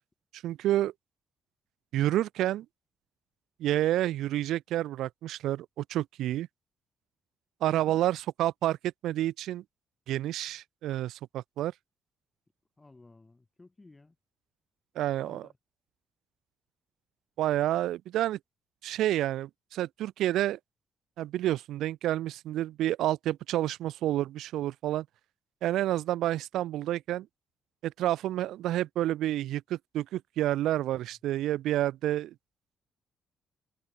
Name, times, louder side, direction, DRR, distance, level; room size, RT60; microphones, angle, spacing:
voice 1, 0.4-0.9 1.9-2.7 3.6-6.5 7.6-9.6 10.1-11.7 15.0-15.5 17.4-18.4 18.8-20.6 21.2-25.1 25.6-27.3 27.8-32.3, right 13 dB, 85° right, 0.4 m, -29 dB
voice 2, 7.7-8.0 12.8-14.2 15.2-15.5, left 2 dB, 20° left, 6.0 m, -55 dB
cardioid pair, 90°, 0 cm